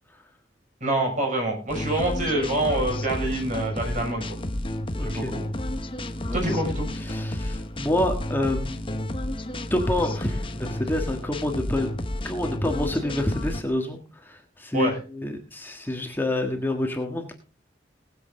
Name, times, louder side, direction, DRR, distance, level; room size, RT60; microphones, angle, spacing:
voice 1, 0.8-4.4 5.0-5.5 6.3-6.9 14.7-15.0, right 1 dB, 45° right, 2 dB, 5.8 m, -26 dB
sound 1, 1.7-13.6, left 1 dB, 30° left, 1.0 m, -31 dB
voice 2, 4.9-5.3 6.3-6.4 7.0-9.1 9.7-11.9 12.2-17.3, left 1 dB, 10° left, 3 dB, 1.5 m, -28 dB
20.0 x 7.8 x 3.8 m, 0.35 s
head